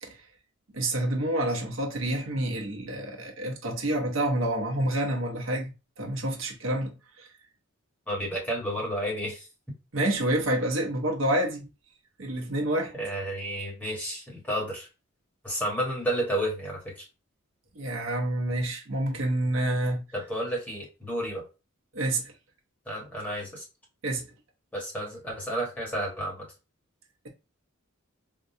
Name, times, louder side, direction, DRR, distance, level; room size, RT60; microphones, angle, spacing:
voice 1, 0.7-7.3 9.9-11.7 12.2-13.0 17.7-20.0 21.9-22.3 24.0-24.3, right 1 dB, 65° right, 0.8 m, -28 dB
voice 2, 8.1-9.5 12.9-14.9 15.4-17.1 20.1-21.4 22.8-23.6 24.7-26.4, right 1 dB, 10° left, 1.4 m, -31 dB
3.7 x 2.2 x 2.7 m
head